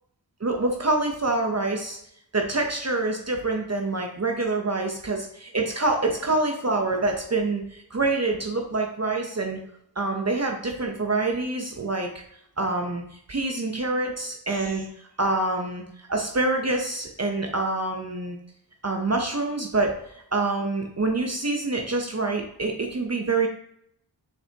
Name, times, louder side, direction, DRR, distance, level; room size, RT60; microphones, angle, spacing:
voice 1, 0.4-2.0 2.3-9.6 10.0-12.1 12.6-14.9 15.2-15.8 16.1-18.4 18.8-23.5, right 2 dB, 35° right, 2 dB, 0.8 m, -26 dB
6.8 x 5.6 x 2.8 m, 0.72 s
wide cardioid pair, 70°, 43 cm